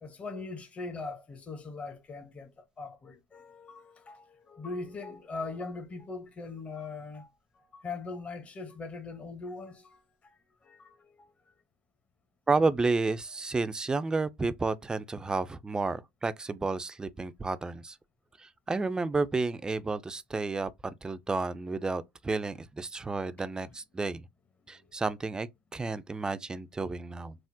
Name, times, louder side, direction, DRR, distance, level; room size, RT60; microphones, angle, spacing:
voice 1, 0.0-11.3 24.7-24.9, left 3 dB, 30° left, 0.8 m, -41 dB
voice 2, 12.5-18.0 18.4-24.2 24.7-27.4, right 3 dB, 15° right, 0.3 m, -31 dB
3.5 x 2.0 x 2.6 m
hypercardioid pair, 75°, 5 cm